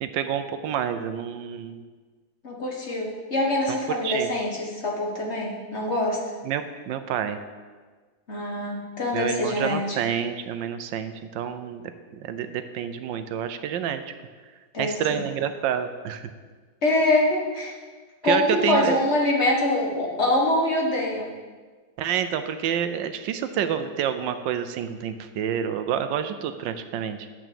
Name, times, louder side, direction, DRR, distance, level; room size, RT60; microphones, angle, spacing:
voice 1, 0.0-1.8 3.7-3.8 4.0-4.3 6.4-7.4 9.1-11.9 12.2-14.0 14.8-16.3 18.2-19.0 22.0-27.3, right 9 dB, 80° right, 9 dB, 1.3 m, -28 dB
voice 2, 2.4-6.2 8.3-10.0 14.7-15.2 16.8-17.8 18.2-21.3, left 1 dB, 40° left, -1 dB, 1.5 m, -24 dB
8.1 x 6.2 x 6.9 m, 1.4 s
omnidirectional pair, 2.0 m